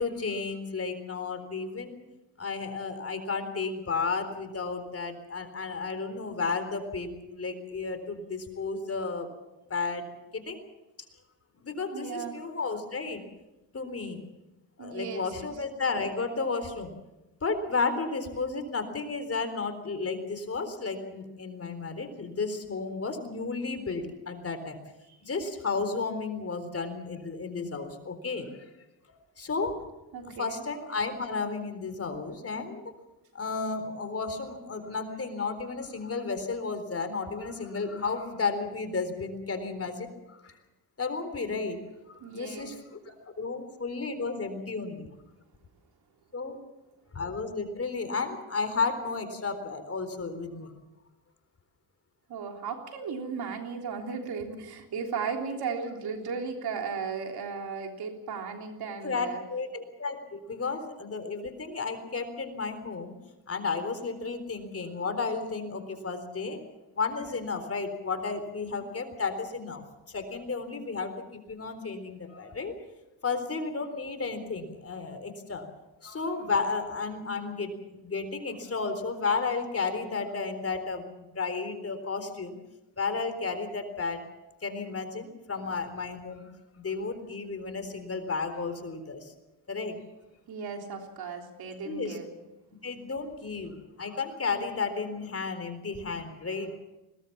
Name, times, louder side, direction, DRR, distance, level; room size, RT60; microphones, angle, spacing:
voice 1, 0.0-2.0 2.4-9.3 9.7-10.6 11.6-13.2 13.7-14.2 14.8-16.9 17.4-24.8 25.2-28.6 29.1-29.8 30.2-32.8 33.3-40.6 41.0-41.8 42.1-45.1 46.3-46.6 47.1-50.7 59.0-63.1 63.5-66.6 67.0-69.8 70.1-72.7 73.2-75.7 76.0-82.6 83.0-84.2 84.6-86.5 86.8-89.3 89.7-90.0 91.8-92.2 92.8-96.8, left 4 dB, 35° left, 8 dB, 3.9 m, -33 dB
voice 2, 11.9-12.3 14.8-15.5 25.1-25.2 30.1-30.6 42.2-42.7 52.3-59.4 90.5-92.3, right 5 dB, 65° right, 3 dB, 3.6 m, -36 dB
21.5 x 18.5 x 7.3 m, 0.99 s
supercardioid pair, 70°, 41 cm